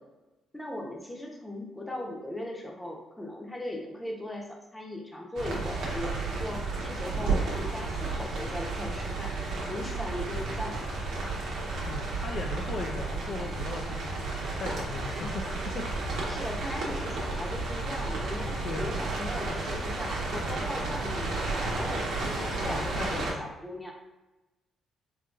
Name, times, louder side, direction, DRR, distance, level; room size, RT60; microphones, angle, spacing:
voice 1, 0.5-9.4 9.7-10.9 15.1-15.6 16.3-23.9, left 1 dB, 10° left, -1 dB, 0.8 m, -38 dB
sound 1, 5.4-23.3, right 3 dB, 80° right, 0.9 m, -32 dB
voice 2, 11.9-14.3 14.6-15.3 15.7-15.8 18.6-19.0 22.6-23.5, left 4 dB, 55° left, 1 dB, 0.4 m, -38 dB
3.8 x 2.7 x 2.4 m, 1.1 s
cardioid pair, 90°, 0 cm